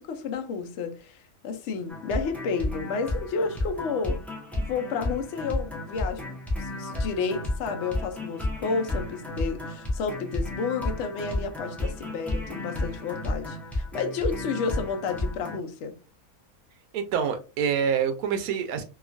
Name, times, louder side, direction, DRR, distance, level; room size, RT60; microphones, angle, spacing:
voice 1, 0.0-4.2 4.5-6.2 6.6-15.9, left 5 dB, 65° left, 0.8 m, -31 dB
sound 1, 1.9-15.6, left 1 dB, ahead, 0.3 m, -32 dB
voice 2, 16.9-18.8, right 7 dB, 80° right, 1.0 m, -26 dB
2.9 x 2.4 x 2.4 m
omnidirectional pair, 1.5 m